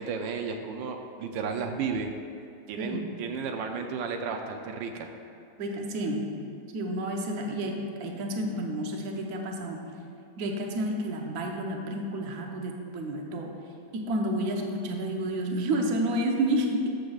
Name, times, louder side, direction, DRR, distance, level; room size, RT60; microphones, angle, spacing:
voice 1, 0.0-2.1 2.7-5.1, right 5 dB, 85° right, 4 dB, 1.3 m, -33 dB
voice 2, 2.8-3.1 5.6-6.3 6.7-9.8 10.4-13.5 13.9-16.9, right 1 dB, 60° right, 1 dB, 1.3 m, -30 dB
13.5 x 6.6 x 2.4 m, 2.6 s
omnidirectional pair, 1.9 m